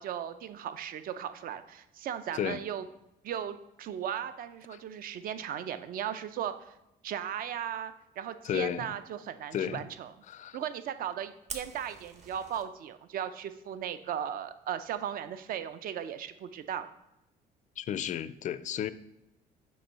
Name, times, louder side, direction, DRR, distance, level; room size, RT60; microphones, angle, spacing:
voice 1, 0.0-2.8 3.2-6.8 7.0-10.1 10.5-16.9, right 9 dB, 60° right, 0.5 m, -37 dB
voice 2, 8.4-8.9 9.5-9.8 10.3-10.6 17.8-18.9, left 10 dB, 45° left, 0.4 m, -33 dB
Fire, 11.5-12.6, right 4 dB, 40° right, 1.0 m, -44 dB
7.0 x 3.1 x 5.5 m
cardioid pair, 110°, 17 cm